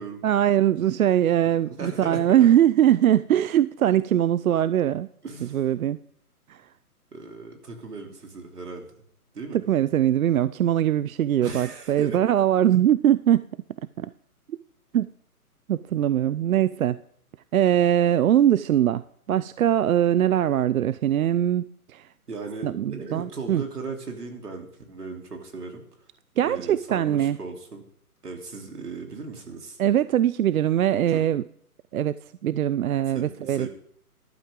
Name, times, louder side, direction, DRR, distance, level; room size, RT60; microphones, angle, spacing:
voice 1, 0.2-5.1 5.4-6.0 6.5-6.6 9.5-13.4 14.0-14.1 14.5-14.6 14.9-15.1 15.7-17.0 17.5-22.1 22.6-23.6 26.4-27.4 29.8-31.4 31.9-32.2 32.4-33.7, right 11 dB, 65° right, 16 dB, 0.5 m, -22 dB
voice 2, 1.7-2.5 5.2-5.6 7.1-8.9 9.3-9.6 11.4-12.2 22.3-25.8 26.4-27.8 28.2-29.8 30.9-31.2 33.1-33.7, right 4 dB, 90° right, 2 dB, 3.3 m, -37 dB
14.5 x 11.5 x 3.7 m, 0.64 s
hypercardioid pair, 160°, 45 cm